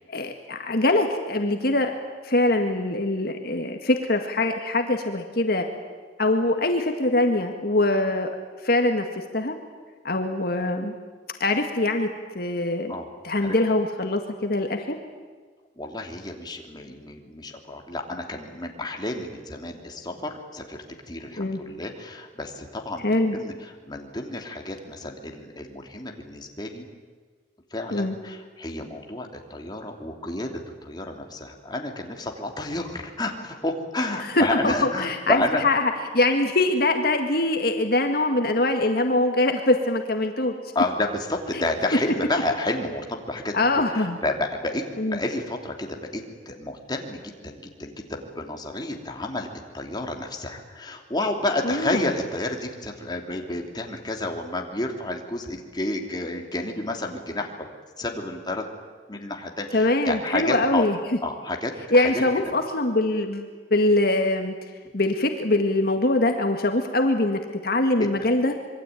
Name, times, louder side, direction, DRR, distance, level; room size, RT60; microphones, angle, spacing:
voice 1, 0.1-2.0 2.2-5.7 6.2-8.3 8.6-9.5 10.0-10.9 11.4-12.1 12.3-13.0 13.2-15.0 21.4-21.6 23.0-23.4 27.9-28.2 34.3-35.8 36.1-40.5 43.5-44.2 45.0-45.2 51.6-52.0 59.7-61.0 61.9-64.5 64.9-68.6, left 2 dB, 60° left, 4 dB, 2.0 m, -23 dB
voice 2, 15.8-26.9 27.7-35.6 40.7-43.5 43.9-44.8 45.1-49.5 49.7-57.7 58.0-58.6 59.1-60.8 61.2-62.2 68.0-68.1, left 2 dB, 25° left, 2 dB, 3.0 m, -30 dB
26.0 x 23.0 x 9.3 m, 1.5 s
head